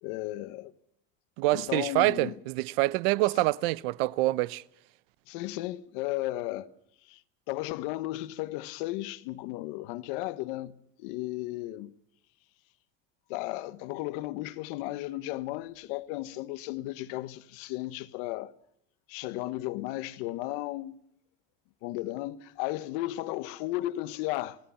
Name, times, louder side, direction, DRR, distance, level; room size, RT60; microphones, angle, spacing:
voice 1, 0.0-0.7 1.5-2.3 5.3-6.7 7.0-7.2 7.5-11.9 13.3-18.5 19.1-21.0 21.8-24.6, left 17 dB, 65° left, 1.3 m, -34 dB
voice 2, 1.4-4.6, right 19 dB, 75° right, 0.8 m, -26 dB
28.0 x 17.0 x 5.7 m
cardioid pair, 175°, 30 cm